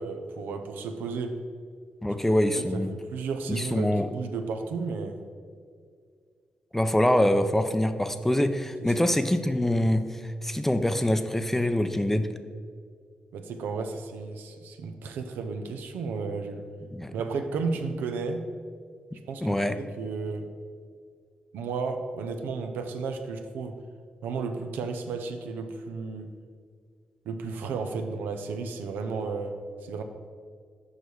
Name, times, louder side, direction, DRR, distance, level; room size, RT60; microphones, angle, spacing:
voice 1, 0.0-1.4 2.6-5.2 9.0-9.1 13.3-16.6 17.1-18.4 19.3-20.5 21.5-23.7 24.2-26.3 27.3-29.6 29.8-30.0, right 4 dB, 85° right, 6 dB, 0.5 m, -33 dB
voice 2, 2.0-2.9 3.5-4.1 6.7-12.3 16.9-17.1 19.4-19.8, left 1 dB, 10° left, 9 dB, 0.5 m, -24 dB
6.4 x 5.4 x 4.7 m, 2.1 s
supercardioid pair, 55°, 3 cm